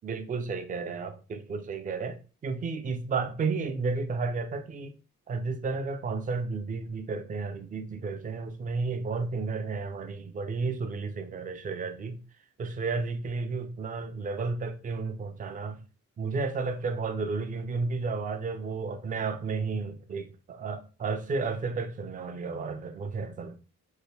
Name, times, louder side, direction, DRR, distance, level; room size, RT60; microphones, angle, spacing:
voice 1, 0.0-2.2 2.4-4.9 5.3-12.2 12.6-15.8 16.2-23.6, right 4 dB, 25° right, 0.3 m, -32 dB
3.3 x 2.4 x 3.1 m
wide cardioid pair, 155°, 31 cm